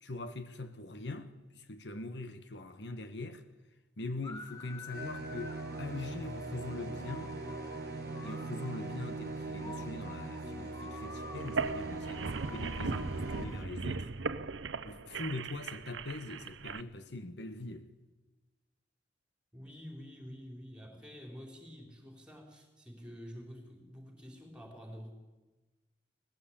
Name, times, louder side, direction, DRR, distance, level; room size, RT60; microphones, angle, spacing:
voice 1, 0.0-3.4 4.0-7.3 8.2-14.1 14.8-17.9, left 2 dB, 65° left, 1.3 m, -42 dB
sound 1, 4.2-13.6, left 2 dB, 20° left, 1.7 m, -47 dB
sound 2, 4.9-13.4, right 3 dB, 55° right, 0.8 m, -42 dB
sound 3, 11.4-16.8, right 4 dB, 85° right, 0.8 m, -38 dB
voice 2, 19.5-25.1, equal, 5° right, 4.1 m, -48 dB
20.5 x 15.5 x 8.8 m
head